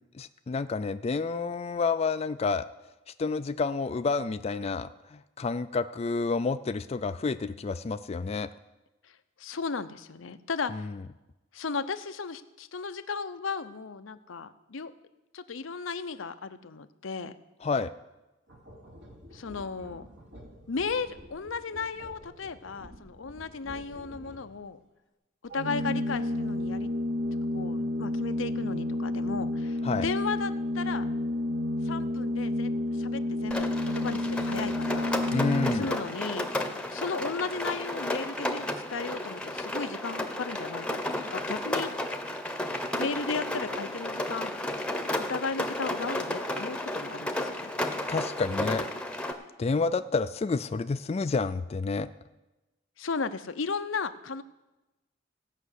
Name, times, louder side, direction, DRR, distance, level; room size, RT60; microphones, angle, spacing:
voice 1, 0.1-2.7 3.2-8.5 10.7-10.9 17.6-17.9 29.8-30.1 35.3-35.9 48.1-48.9 49.6-52.1, left 4 dB, 30° left, 10 dB, 0.3 m, -29 dB
voice 2, 9.4-10.9 11.5-14.9 15.3-17.3 19.3-20.0 20.7-24.8 25.5-26.9 27.5-31.1 31.8-35.1 35.7-36.5 36.9-41.0 41.3-41.9 43.0-44.6 45.2-47.7 53.0-54.4, left 4 dB, 85° left, 11 dB, 0.7 m, -35 dB
sound 1, 18.5-24.7, equal, 75° right, 2.8 m, -50 dB
Organ, 25.5-36.2, left 1 dB, 45° right, 0.7 m, -30 dB
Rain, 33.5-49.3, left 1 dB, 5° left, 0.9 m, -33 dB
16.5 x 5.8 x 8.2 m, 1.0 s
head